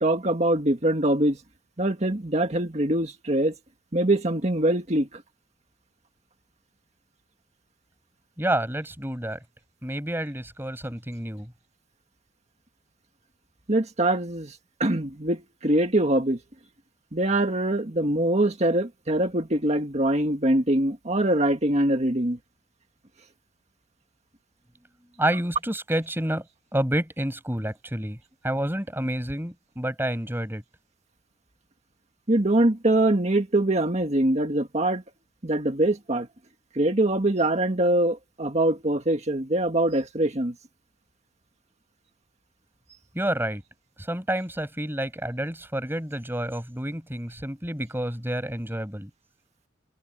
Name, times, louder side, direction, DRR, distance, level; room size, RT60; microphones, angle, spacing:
voice 1, 0.0-1.4 1.8-3.5 3.9-5.2 13.7-14.6 14.8-16.4 17.1-22.4 32.3-35.0 35.4-36.3 36.8-40.5, right 1 dB, 35° right, 1.7 m, -23 dB
voice 2, 8.4-9.4 9.8-11.5 25.2-26.4 26.7-28.2 28.4-30.6 43.1-43.6 44.0-49.1, right 1 dB, 10° right, 7.6 m, -29 dB
head